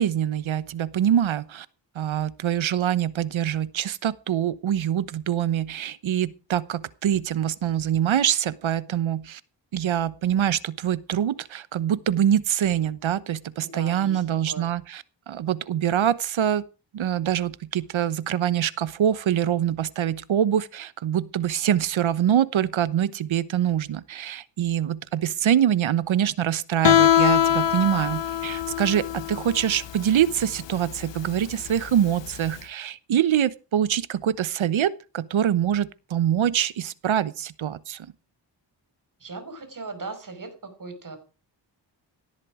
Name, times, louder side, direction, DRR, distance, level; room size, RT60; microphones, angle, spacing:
voice 1, 0.0-1.7 1.9-9.4 9.7-16.6 16.9-38.1, right 10 dB, 85° right, 1.1 m, -24 dB
voice 2, 13.6-14.7 39.2-41.2, right 3 dB, 45° right, 5.4 m, -38 dB
Guitar, 26.8-32.5, left 11 dB, 65° left, 1.0 m, -23 dB
17.5 x 11.0 x 4.9 m
wide cardioid pair, 100°, 46 cm